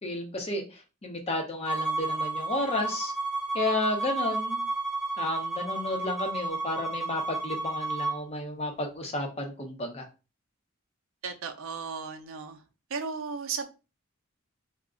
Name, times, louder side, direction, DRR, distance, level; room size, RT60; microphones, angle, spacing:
voice 1, 0.0-3.1 3.5-4.6 5.2-10.1, left 2 dB, 30° left, 0.6 m, -32 dB
Bowed string instrument, 1.6-8.2, right 3 dB, 5° left, 1.1 m, -32 dB
voice 2, 11.2-12.6 12.9-13.7, right 5 dB, 70° right, 0.5 m, -35 dB
2.4 x 2.1 x 3.6 m
head